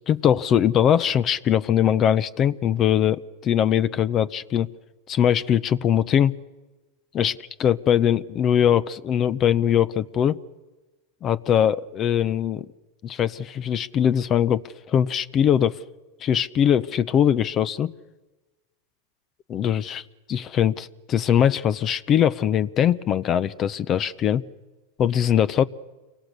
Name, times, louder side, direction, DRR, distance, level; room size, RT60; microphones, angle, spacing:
voice 1, 0.1-4.7 5.1-6.4 7.1-7.3 7.6-10.4 11.2-12.7 13.0-14.6 14.9-15.8 16.2-17.9 19.5-20.0 20.3-24.4 25.0-25.6, left 9 dB, 35° left, 18 dB, 0.8 m, -21 dB
29.0 x 24.0 x 6.8 m, 1.2 s
hypercardioid pair, 120°, 0 cm